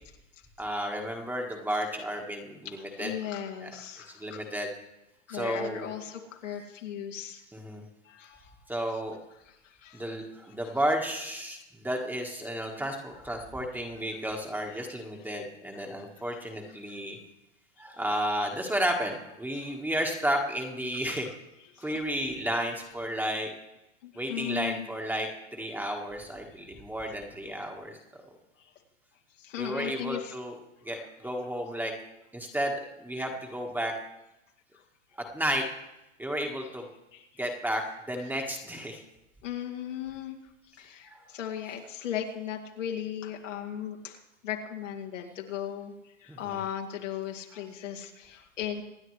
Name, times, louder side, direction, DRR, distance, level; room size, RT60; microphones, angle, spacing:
voice 1, 0.6-3.1 3.6-3.7 4.1-4.7 5.3-6.0 7.5-7.8 8.7-9.2 9.9-17.2 17.8-21.3 21.8-23.5 24.1-28.0 29.6-30.6 30.8-31.9 32.3-33.9 35.2-35.6 36.2-36.9 37.4-39.0 41.0-41.2 46.3-46.6 47.5-47.6, equal, 5° right, 2 dB, 1.4 m, -32 dB
voice 2, 2.8-4.4 5.3-7.4 8.0-8.6 9.5-10.1 15.3-15.4 15.7-16.1 21.7-22.0 24.0-24.9 28.6-28.7 29.4-30.3 31.0-31.1 34.7-34.8 37.1-37.3 39.4-40.4 40.7-48.8, left 10 dB, 80° left, 0 dB, 2.4 m, -37 dB
26.0 x 9.8 x 3.2 m, 0.91 s
hypercardioid pair, 125°, 37 cm